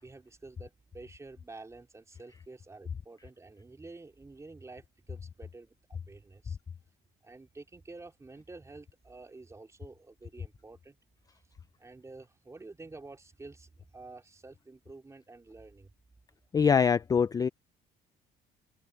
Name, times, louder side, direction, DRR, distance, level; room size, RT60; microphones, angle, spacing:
voice 1, 0.0-6.6 7.2-11.0 11.8-15.9, right 3 dB, 15° right, 4.0 m, -49 dB
voice 2, 16.5-17.5, left 6 dB, 20° left, 0.4 m, -24 dB
cardioid pair, 130°, 18 cm